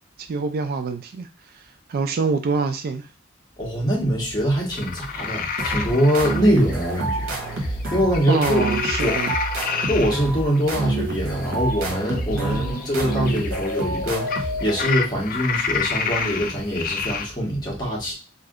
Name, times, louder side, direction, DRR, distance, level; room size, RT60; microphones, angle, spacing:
voice 1, 0.3-1.3 1.9-3.1 8.3-9.3 12.3-12.8, right 4 dB, 50° right, 0.3 m, -25 dB
voice 2, 3.6-8.7 9.0-9.2 9.9-18.1, equal, 20° left, 1.2 m, -23 dB
sound 1, 4.6-7.9 8.1-17.3, left 6 dB, 45° left, 0.4 m, -29 dB
sound 2, 5.6-15.1, right 2 dB, 75° right, 0.9 m, -28 dB
3.3 x 2.6 x 2.4 m
head